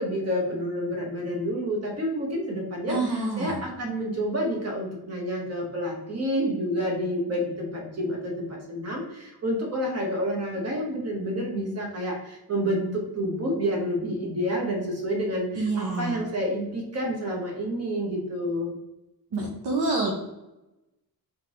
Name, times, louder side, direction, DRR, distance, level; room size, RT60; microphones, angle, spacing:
voice 1, 0.0-18.7, equal, 40° right, 0 dB, 1.2 m, -29 dB
voice 2, 2.9-3.6 15.5-16.2 19.3-20.1, right 3 dB, 85° right, -1 dB, 0.9 m, -27 dB
3.6 x 3.6 x 3.1 m, 0.95 s
wide cardioid pair, 145°, 38 cm